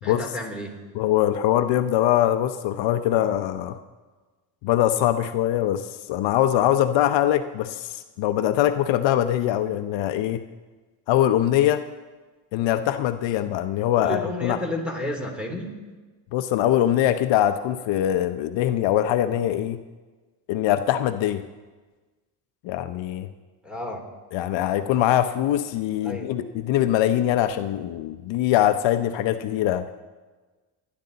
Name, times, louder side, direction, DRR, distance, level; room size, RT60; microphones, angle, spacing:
voice 1, 0.0-0.8 13.9-15.8 23.6-24.0 26.0-26.3, left 1 dB, ahead, 1 dB, 3.2 m, -31 dB
voice 2, 0.9-3.8 4.6-10.4 11.1-11.8 12.5-14.6 16.3-19.8 20.5-21.4 22.6-23.3 24.3-29.9, left 12 dB, 70° left, 9 dB, 0.8 m, -22 dB
29.5 x 10.5 x 4.1 m, 1.3 s
cardioid pair, 125°, 46 cm